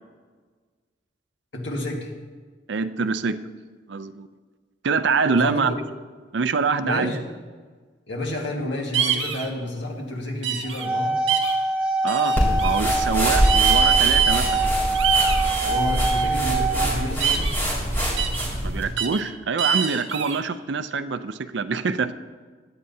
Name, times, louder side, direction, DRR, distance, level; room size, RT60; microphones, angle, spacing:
voice 1, 1.5-2.1 5.3-5.6 6.8-7.2 8.1-11.2 15.7-17.5, left 1 dB, 70° left, 1 dB, 1.8 m, -30 dB
voice 2, 2.7-3.4 3.9-4.3 4.8-5.7 6.3-7.1 12.0-14.6 18.6-22.1, right 5 dB, 70° right, 12 dB, 0.5 m, -25 dB
sound 1, 8.9-9.5 10.4-10.9 11.3-11.5 12.1-12.8 13.4-14.7 14.9-16.3 17.2-17.6 18.2-18.4 19.0-19.2 19.6-20.4, right 8 dB, 90° right, 1.4 m, -24 dB
sound 2, 10.6-16.9, right 2 dB, 5° right, 0.7 m, -25 dB
sound 3, 12.4-18.9, equal, 15° left, 3.2 m, -24 dB
16.5 x 10.5 x 2.7 m, 1.5 s
head